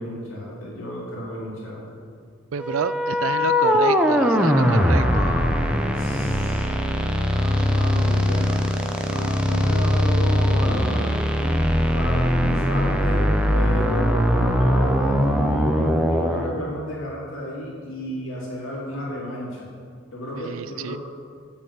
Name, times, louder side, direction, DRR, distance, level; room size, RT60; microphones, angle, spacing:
voice 1, 0.0-2.0 4.5-6.8 7.2-8.6 9.0-11.3 11.9-19.7 20.1-21.0, equal, 90° left, -5 dB, 2.7 m, -32 dB
voice 2, 2.5-5.3 5.9-6.2 8.1-8.3 20.4-21.0, right 6 dB, 80° right, 15 dB, 0.4 m, -30 dB
sound 1, 2.6-16.5, equal, 5° right, 0.6 m, -21 dB
8.2 x 7.2 x 6.7 m, 2.1 s
head